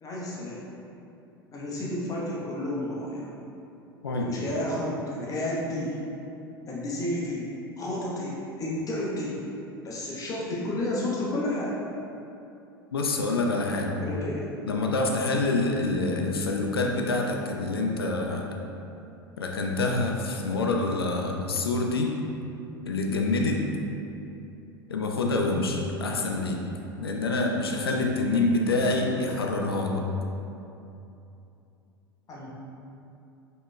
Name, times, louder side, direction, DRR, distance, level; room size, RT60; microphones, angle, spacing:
voice 1, 0.0-0.7 1.5-3.3 4.1-6.0 6.7-7.5 7.8-9.4 9.8-11.9 14.0-14.5 32.3-32.5, left 1 dB, 25° left, -5 dB, 1.0 m, -31 dB
voice 2, 12.9-13.9 14.7-18.6 19.4-22.1 22.9-23.6 24.9-26.6 27.0-30.1, left 2 dB, 75° left, 1 dB, 0.4 m, -26 dB
4.8 x 4.2 x 2.2 m, 2.8 s
figure-of-eight pair, 80°, 13 cm